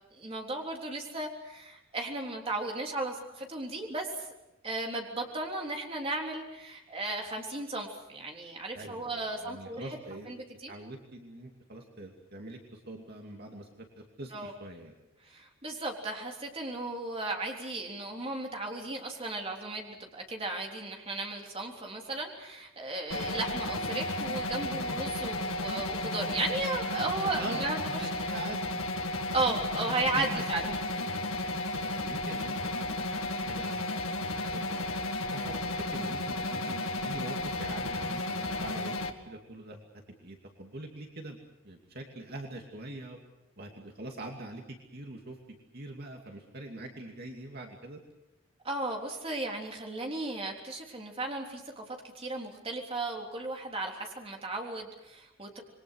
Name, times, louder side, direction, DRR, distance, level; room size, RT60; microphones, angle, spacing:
voice 1, 0.2-4.3 4.6-10.0 10.3-10.7 14.3-14.5 15.2-28.1 29.3-30.7 48.6-55.6, right 2 dB, 30° right, 1 dB, 3.5 m, -35 dB
voice 2, 8.7-10.3 10.7-14.9 27.2-27.6 28.0-28.8 30.1-31.1 31.8-34.1 34.5-34.8 35.3-39.0 39.3-39.8 40.2-41.4 41.6-43.2 43.6-45.4 45.7-48.0, right 2 dB, 50° right, 2 dB, 2.7 m, -44 dB
sound 1, 23.1-39.1, left 2 dB, 80° left, 2.1 m, -33 dB
27.5 x 22.5 x 6.5 m, 0.92 s
head